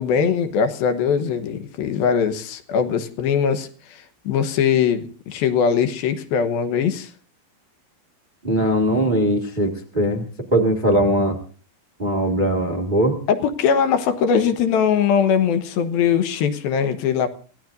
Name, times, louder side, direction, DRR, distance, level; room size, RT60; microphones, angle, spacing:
voice 1, 0.0-3.7 4.3-7.1 13.3-17.3, left 7 dB, 80° left, 9 dB, 3.0 m, -21 dB
voice 2, 8.4-10.2 10.5-11.4 12.0-13.2, right 1 dB, 25° right, 3 dB, 1.0 m, -20 dB
29.5 x 16.0 x 2.6 m, 0.39 s
omnidirectional pair, 4.2 m